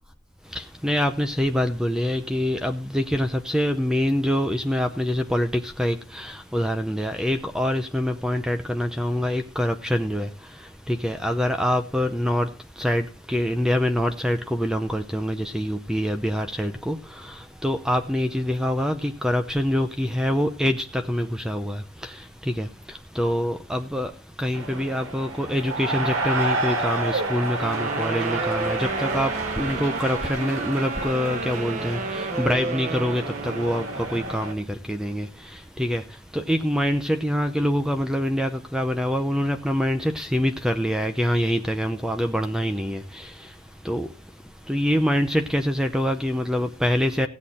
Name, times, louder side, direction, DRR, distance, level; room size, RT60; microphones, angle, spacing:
voice 1, 0.4-47.3, equal, 5° right, 0.7 m, -25 dB
sound 1, 24.5-34.5, right 2 dB, 70° right, 4.0 m, -30 dB
sound 2, 27.6-34.1, right 4 dB, 35° right, 0.6 m, -32 dB
16.5 x 8.3 x 4.3 m
head